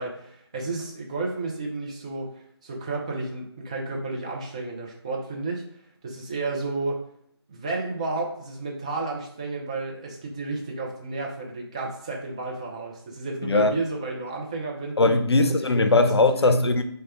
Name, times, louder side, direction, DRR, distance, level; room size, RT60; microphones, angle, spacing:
voice 1, 0.0-5.7 6.0-7.0 7.5-15.0 15.3-15.5 15.9-16.1 16.3-16.6, right 3 dB, 15° right, 0.4 m, -32 dB
voice 2, 13.4-13.7 15.0-16.8, left 2 dB, 70° left, 0.5 m, -20 dB
4.9 x 2.1 x 3.3 m
figure-of-eight pair, 155°, 14 cm